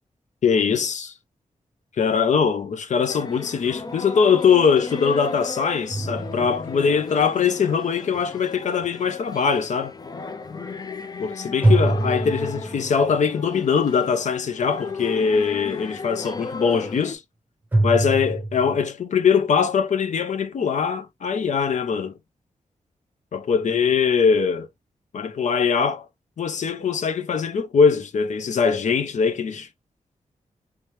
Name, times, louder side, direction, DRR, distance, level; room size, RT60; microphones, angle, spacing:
voice 1, 0.4-1.1 2.0-9.9 11.2-17.2 17.8-22.1 23.3-24.7 25.1-26.1 26.4-29.7, left 6 dB, 65° left, 0.7 m, -22 dB
sound 1, 3.1-17.2, left 4 dB, 30° left, 0.4 m, -35 dB
sound 2, 5.9-7.1 11.6-13.2 17.7-18.9, right 2 dB, 15° right, 0.7 m, -24 dB
3.3 x 3.3 x 3.1 m
wide cardioid pair, 165°, 13 cm